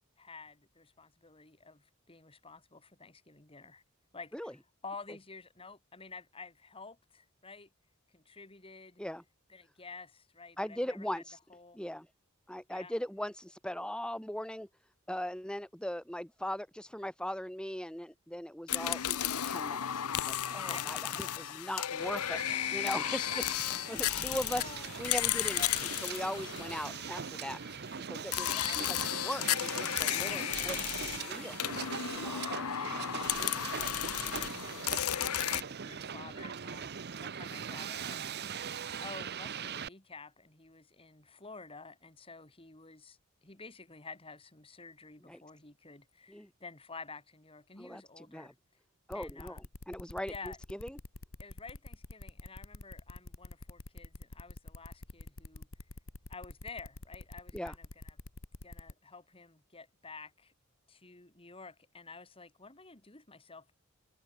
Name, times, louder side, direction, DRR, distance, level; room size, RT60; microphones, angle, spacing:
voice 1, 0.2-3.8 4.1-7.7 8.1-9.0 9.5-11.2 11.5-11.8 12.7-12.9 20.5-21.4 22.5-22.6 23.3-23.5 23.9-25.1 25.5-25.8 28.5-28.8 32.3-43.2 43.4-48.5 49.1-49.6 50.2-50.6 51.4-55.7 56.3-58.2 58.6-60.5 60.9-63.7, left 4 dB, 25° left, 2.7 m, -50 dB
voice 2, 10.6-11.4 11.7-12.1 12.5-14.7 15.1-22.4 22.7-23.3 23.9-24.6 25.0-25.6 26.0-27.6 28.1-29.0 29.2-30.8 31.0-31.6 32.1-32.4 45.3-45.4 46.3-46.5 47.8-48.5 49.1-51.0 57.5-57.7, left 1 dB, 5° left, 2.7 m, -39 dB
sound 1, 18.7-27.5 28.3-35.6, left 11 dB, 90° left, 0.8 m, -34 dB
Hiss, 22.0-39.9, right 7 dB, 50° right, 0.8 m, -41 dB
sound 2, 49.1-58.9, left 2 dB, 65° left, 1.7 m, -47 dB
head